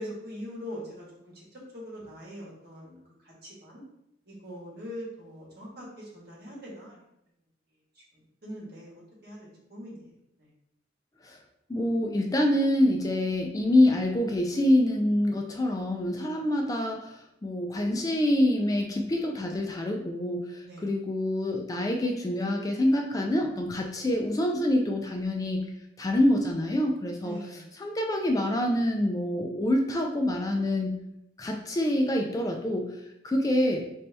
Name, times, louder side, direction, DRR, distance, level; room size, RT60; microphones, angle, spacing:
voice 1, 0.0-1.3 1.7-3.8 4.3-7.0 8.4-8.9 9.2-10.0 20.6-20.9 27.2-27.6, equal, 55° right, -5 dB, 1.5 m, -42 dB
voice 2, 11.7-25.7 26.0-31.0 31.4-32.9 33.2-33.8, left 1 dB, 20° left, 2 dB, 0.3 m, -26 dB
4.3 x 2.7 x 3.3 m, 0.82 s
head